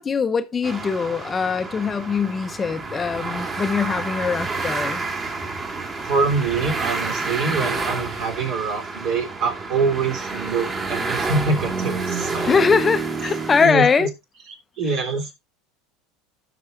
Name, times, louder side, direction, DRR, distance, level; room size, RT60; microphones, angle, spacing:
voice 1, 0.0-5.0 12.4-14.1, left 5 dB, 25° left, 0.7 m, -22 dB
sound 1, 0.6-13.6, right 3 dB, 30° right, 2.3 m, -29 dB
voice 2, 6.0-12.5 13.6-14.1 14.8-15.4, right 4 dB, 60° right, 3.3 m, -24 dB
16.0 x 6.0 x 2.5 m
hypercardioid pair, 85°, 0 cm